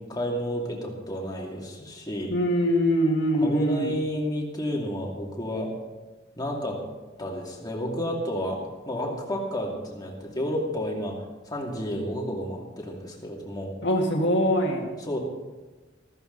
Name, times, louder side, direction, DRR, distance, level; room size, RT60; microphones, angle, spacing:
voice 1, 0.1-2.3 3.4-5.7 6.4-6.8 7.2-8.6 8.9-11.1 11.5-13.7 15.0-15.2, equal, 20° left, -2 dB, 2.6 m, -31 dB
voice 2, 2.3-3.9 13.8-14.9, equal, 65° left, -1 dB, 2.0 m, -23 dB
14.5 x 14.0 x 4.1 m, 1.2 s
head